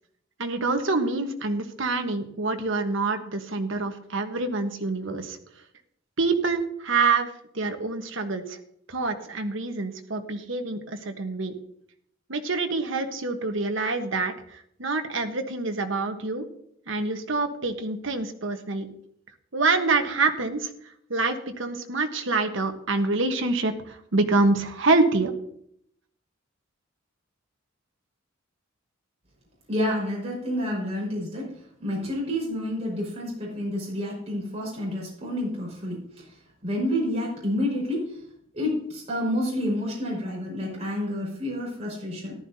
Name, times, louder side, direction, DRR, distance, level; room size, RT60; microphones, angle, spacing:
voice 1, 0.4-5.4 6.2-8.6 8.9-11.5 12.3-16.5 16.9-18.9 19.5-20.7 21.1-25.3, right 3 dB, 60° right, 6 dB, 1.3 m, -26 dB
voice 2, 29.7-38.2 38.5-42.3, left 1 dB, 30° right, -3 dB, 5.2 m, -29 dB
14.5 x 12.0 x 2.8 m, 0.69 s
head